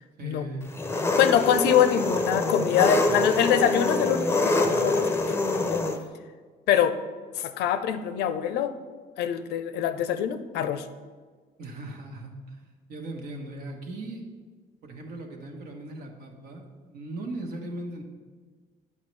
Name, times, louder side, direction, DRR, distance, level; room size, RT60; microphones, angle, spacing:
voice 1, 0.2-0.7 11.6-14.3 14.8-18.0, right 2 dB, 65° right, 2 dB, 1.2 m, -38 dB
Engine, 0.7-6.0, left 2 dB, 15° left, 0.6 m, -25 dB
voice 2, 1.2-5.9 6.7-7.0 7.4-8.7 9.2-10.9, left 9 dB, 80° left, 10 dB, 0.5 m, -24 dB
8.4 x 5.6 x 3.2 m, 1.5 s
cardioid pair, 110°, 17 cm